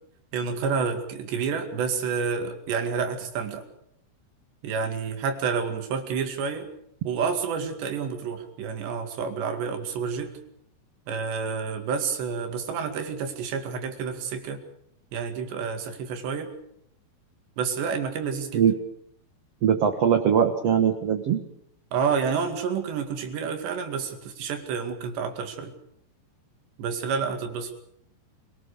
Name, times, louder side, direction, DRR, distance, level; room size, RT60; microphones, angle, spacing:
voice 1, 0.3-3.6 4.6-6.7 7.0-10.4 11.1-14.7 15.1-16.5 17.6-18.6 21.9-25.7 26.8-27.8, right 6 dB, 90° right, 6 dB, 4.5 m, -29 dB
voice 2, 19.6-21.4, right 8 dB, 60° right, 6 dB, 1.7 m, -21 dB
26.5 x 18.5 x 6.9 m, 0.72 s
omnidirectional pair, 4.8 m